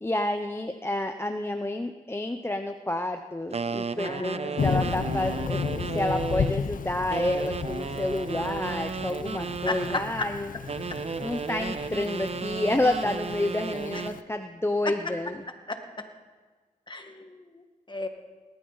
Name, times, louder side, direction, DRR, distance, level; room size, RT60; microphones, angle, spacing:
voice 1, 0.0-5.6 5.9-10.5 11.2-15.3, left 1 dB, 15° left, 6 dB, 0.8 m, -29 dB
sound 1, 3.5-6.6 7.1-10.1 10.7-14.2, right 5 dB, 45° right, 0.6 m, -34 dB
voice 2, 4.0-4.7 9.6-10.3 13.9-14.0 14.8-14.9 15.7-16.0 16.9-18.1, left 2 dB, 30° left, 6 dB, 1.7 m, -34 dB
Thunder / Rain, 4.6-14.2, left 6 dB, 65° left, 0.6 m, -34 dB
19.0 x 13.5 x 4.0 m, 1.4 s
cardioid pair, 55°, 15 cm